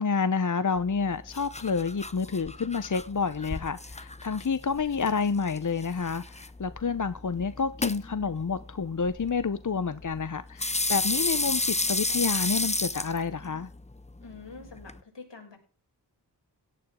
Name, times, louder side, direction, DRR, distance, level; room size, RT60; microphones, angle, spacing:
voice 1, 0.0-13.7, left 5 dB, 45° left, 0.9 m, -29 dB
sound 1, 0.8-15.0, left 2 dB, 15° left, 0.9 m, -33 dB
voice 2, 14.2-15.6, left 4 dB, 80° left, 6.8 m, -46 dB
17.0 x 12.0 x 3.8 m
wide cardioid pair, 75°, 42 cm